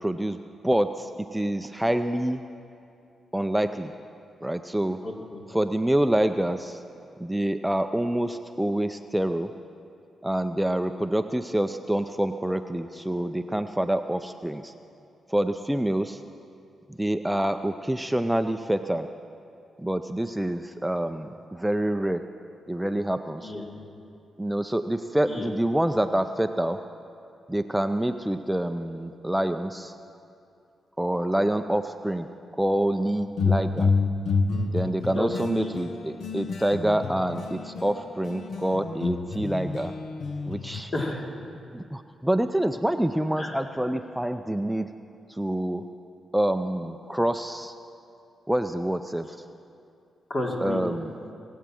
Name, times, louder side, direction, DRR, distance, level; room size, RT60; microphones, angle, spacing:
voice 1, 0.0-2.4 3.3-3.9 4.4-5.0 5.5-6.8 7.2-9.5 10.2-14.7 15.3-16.2 17.0-19.1 19.8-22.2 22.7-23.5 24.4-26.8 27.5-29.9 31.0-32.3 32.5-33.9 34.7-39.9 40.5-40.9 41.7-44.9 45.3-45.8 46.3-47.7 48.5-49.4 50.6-51.1, right 1 dB, 5° right, 8 dB, 0.5 m, -27 dB
voice 2, 5.0-5.4 23.4-23.7 25.3-25.5 35.0-35.8 40.9-41.3 43.4-43.6 50.3-50.8, left 1 dB, 50° left, 0 dB, 2.6 m, -32 dB
sound 1, 33.2-38.0 38.2-40.8, left 4 dB, 75° left, 0.9 m, -28 dB
21.5 x 8.3 x 7.5 m, 2.6 s
cardioid pair, 60°, 0 cm